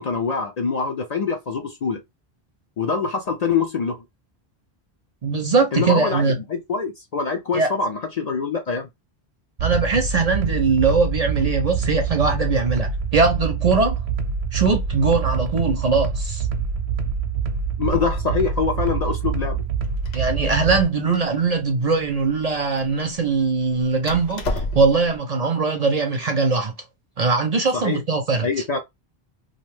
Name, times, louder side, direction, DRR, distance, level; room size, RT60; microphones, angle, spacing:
voice 1, 0.0-2.0 2.8-4.0 5.7-8.9 17.8-19.6 27.7-28.0 28.4-28.8, left 5 dB, 55° left, 0.5 m, -24 dB
voice 2, 5.2-6.4 7.5-7.7 9.6-14.0 14.5-16.5 20.1-26.7 27.2-28.5, right 4 dB, 50° right, 0.5 m, -21 dB
sound 1, 9.6-20.8, right 5 dB, 85° right, 0.8 m, -25 dB
Door, 19.6-25.2, left 1 dB, 90° left, 1.0 m, -34 dB
2.5 x 2.2 x 3.2 m
omnidirectional pair, 1.0 m